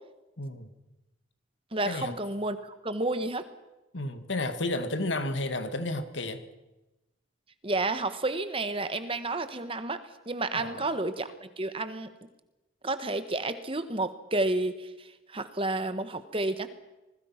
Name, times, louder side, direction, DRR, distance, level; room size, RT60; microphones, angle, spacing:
voice 1, 0.4-0.7 1.9-2.1 3.9-6.4 10.5-10.9, left 2 dB, 70° left, 9 dB, 2.1 m, -32 dB
voice 2, 1.7-3.5 7.6-12.1 12.8-16.7, right 2 dB, 30° right, 11 dB, 1.4 m, -31 dB
27.0 x 21.0 x 5.9 m, 1.0 s
head